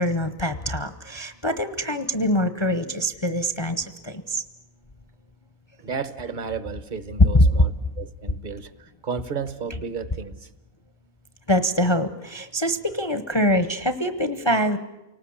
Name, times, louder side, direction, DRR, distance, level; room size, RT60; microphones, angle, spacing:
voice 1, 0.0-4.4 7.3-7.7 11.5-14.8, equal, 25° left, 11 dB, 0.7 m, -23 dB
voice 2, 5.8-7.7 8.0-10.5, right 6 dB, 40° right, 14 dB, 1.1 m, -33 dB
29.0 x 19.0 x 8.7 m, 1.0 s
omnidirectional pair, 1.5 m